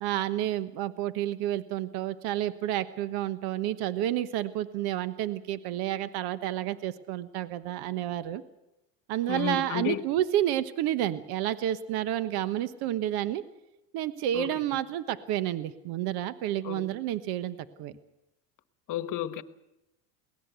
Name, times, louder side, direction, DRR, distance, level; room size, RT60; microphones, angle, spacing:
voice 1, 0.0-8.4 9.1-13.4 13.9-17.9, right 12 dB, 70° right, 1.2 m, -30 dB
voice 2, 9.3-10.0 14.3-14.6 16.6-16.9 18.9-19.4, left 12 dB, 50° left, 1.3 m, -32 dB
22.5 x 18.5 x 8.2 m
supercardioid pair, 110°, 40 cm